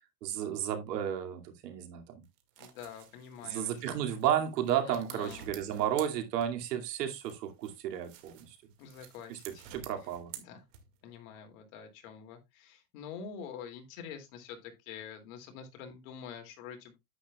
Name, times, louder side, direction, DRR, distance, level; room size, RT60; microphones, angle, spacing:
voice 1, 0.2-2.2 3.4-8.6 9.3-9.4 9.7-10.3, right 10 dB, 80° right, 2.6 m, -33 dB
sound 1, 2.2-6.8 7.2-11.1, right 10 dB, 55° right, 2.2 m, -52 dB
voice 2, 2.6-4.2 4.8-5.5 8.8-9.7 10.4-10.6 11.0-17.0, left 7 dB, 55° left, 2.7 m, -46 dB
9.8 x 9.0 x 2.4 m
supercardioid pair, 160°, 48 cm